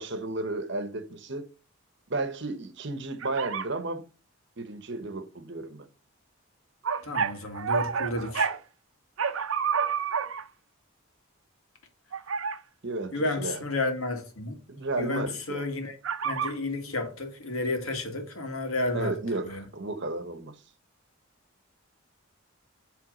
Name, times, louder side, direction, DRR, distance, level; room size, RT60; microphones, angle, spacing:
voice 1, 0.0-1.5 2.1-4.0 4.6-5.9 12.8-13.6 14.7-15.6 18.9-20.5, right 2 dB, 55° right, 0.9 m, -33 dB
sound 1, 3.2-3.7 6.8-8.6 9.2-10.5 12.1-12.6 16.0-16.6, right 6 dB, 70° right, 0.6 m, -29 dB
voice 2, 7.0-8.5 13.1-14.6 15.0-16.0 16.2-19.2 19.4-19.6, left 2 dB, 90° left, 1.7 m, -31 dB
7.9 x 3.4 x 5.0 m
head